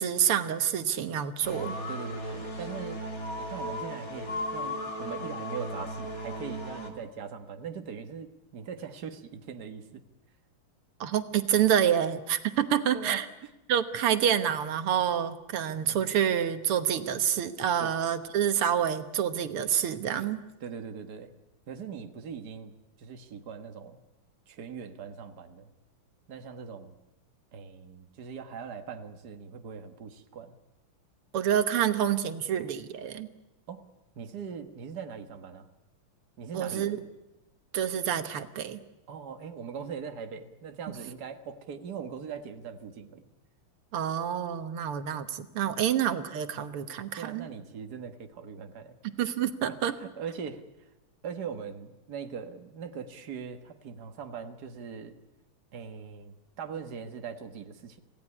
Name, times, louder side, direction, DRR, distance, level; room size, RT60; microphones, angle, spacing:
voice 1, 0.0-1.8 11.0-13.3 13.7-20.4 31.3-33.3 36.5-37.0 37.7-38.8 43.9-47.5 49.2-50.0, right 9 dB, 85° right, 9 dB, 2.1 m, -27 dB
sound 1, 1.4-6.9, left 1 dB, 40° left, 3.4 m, -36 dB
voice 2, 1.9-3.0 3.4-10.0 12.9-13.5 15.7-16.1 17.8-17.9 20.6-21.3 21.7-24.0 24.5-25.7 26.3-27.0 27.5-30.6 33.7-33.9 34.2-35.7 36.4-37.0 39.1-43.3 47.2-49.0 49.7-50.9 51.2-55.2 55.7-58.0, right 6 dB, 50° right, 6 dB, 2.0 m, -41 dB
27.0 x 17.0 x 9.7 m, 0.99 s
omnidirectional pair, 2.4 m